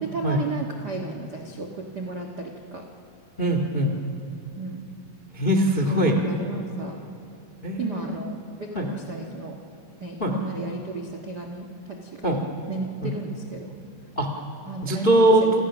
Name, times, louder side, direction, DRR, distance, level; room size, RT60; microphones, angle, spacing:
voice 1, 0.0-2.9 4.6-4.8 5.9-7.0 7.8-9.6 10.0-12.4 12.7-13.8 14.7-15.5, right 4 dB, 75° right, 2 dB, 0.9 m, -34 dB
voice 2, 3.4-3.9 5.4-6.1 7.6-8.2 8.7-8.9 10.2-10.3 12.2-12.4 13.0-13.1 14.2-14.3 14.8-15.4, right 1 dB, 85° left, 4 dB, 0.4 m, -21 dB
28.5 x 27.0 x 6.2 m, 2.7 s
omnidirectional pair, 4.4 m